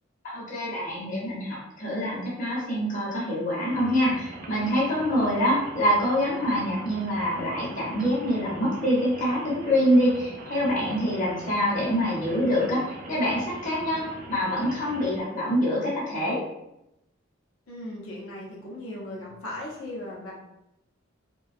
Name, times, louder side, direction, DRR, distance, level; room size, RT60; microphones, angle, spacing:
voice 1, 0.2-16.4, equal, 40° left, -6 dB, 0.7 m, -25 dB
Rain, 3.7-15.2, right 2 dB, 40° right, 0.3 m, -42 dB
voice 2, 17.7-20.3, left 1 dB, 85° left, -4 dB, 0.7 m, -37 dB
2.7 x 2.2 x 2.4 m, 0.88 s
head